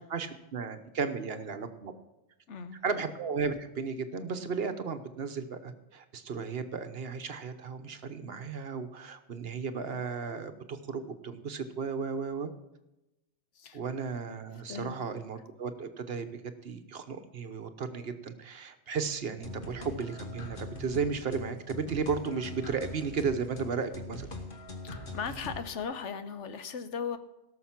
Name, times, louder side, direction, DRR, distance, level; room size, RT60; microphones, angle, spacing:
voice 1, 0.1-1.9 2.8-12.5 13.7-16.3 16.6-24.3, right 5 dB, 60° right, 9 dB, 1.1 m, -34 dB
voice 2, 2.5-2.8 13.5-13.8 14.7-15.0 24.8-27.2, left 6 dB, 85° left, 10 dB, 1.3 m, -37 dB
sound 1, 19.4-25.8, left 2 dB, 50° left, 1.5 m, -42 dB
17.5 x 6.5 x 5.9 m, 0.95 s
omnidirectional pair, 1.2 m